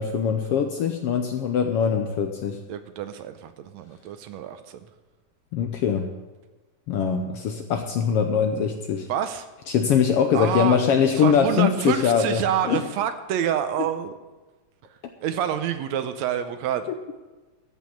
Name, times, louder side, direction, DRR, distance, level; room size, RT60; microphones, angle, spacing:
voice 1, 0.0-2.6 5.5-6.1 6.9-9.1 9.7-12.8, left 7 dB, 70° left, 5 dB, 1.5 m, -22 dB
voice 2, 2.7-4.9 9.1-9.5 10.3-10.8 11.2-14.1 14.8-16.9, right 10 dB, 75° right, 9 dB, 1.8 m, -28 dB
13.5 x 5.5 x 8.4 m, 1.2 s
omnidirectional pair, 3.4 m